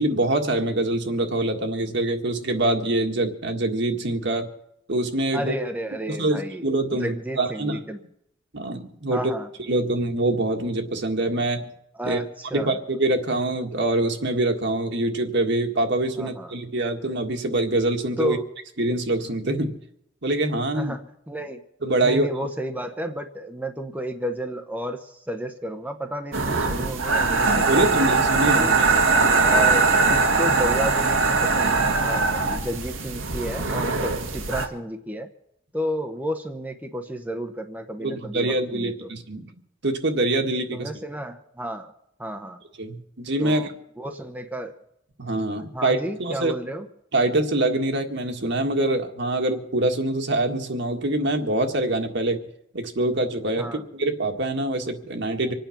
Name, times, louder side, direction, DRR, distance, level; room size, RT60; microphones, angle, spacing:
voice 1, 0.0-4.5 4.9-5.6 6.1-7.8 8.5-9.2 9.7-11.7 12.1-12.2 12.5-18.4 18.8-19.8 20.2-20.9 21.8-22.3 27.5-28.9 38.0-39.5 39.8-40.9 42.8-43.7 45.2-46.5 47.1-52.4 52.7-55.5, right 2 dB, 60° right, 5 dB, 1.7 m, -24 dB
voice 2, 5.3-8.0 9.1-9.5 12.0-12.8 16.2-16.5 18.2-18.4 20.7-21.6 22.0-28.0 28.4-28.9 29.4-35.3 35.7-39.1 40.7-41.9 42.2-42.6 43.4-43.7 44.0-44.7 45.7-46.9 53.6-53.8, equal, 10° right, 5 dB, 0.9 m, -32 dB
sound 1, 26.3-34.7, right 4 dB, 85° right, 1.8 m, -21 dB
25.5 x 9.1 x 5.9 m, 0.76 s
head